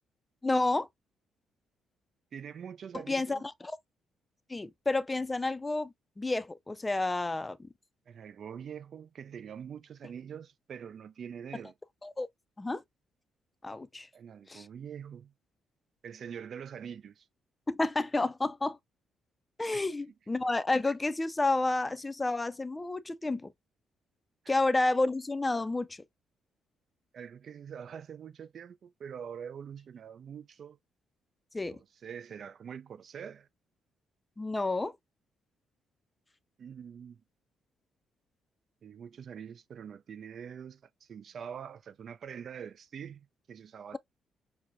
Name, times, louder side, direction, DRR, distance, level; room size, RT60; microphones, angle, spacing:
voice 1, 0.4-0.9 3.1-3.8 4.5-7.7 12.0-12.3 12.6-12.8 13.6-14.1 14.5-14.7 17.7-18.8 19.6-23.5 24.5-26.0 31.5-31.8 34.4-34.9, left 2 dB, 15° left, 0.4 m, -30 dB
voice 2, 2.3-3.4 8.1-11.7 14.1-15.3 16.0-17.3 19.7-19.8 24.4-24.5 27.1-30.8 31.7-33.5 36.6-37.2 38.8-44.0, right 7 dB, 55° right, 0.3 m, -44 dB
5.9 x 2.1 x 2.5 m
cardioid pair, 90°, 0 cm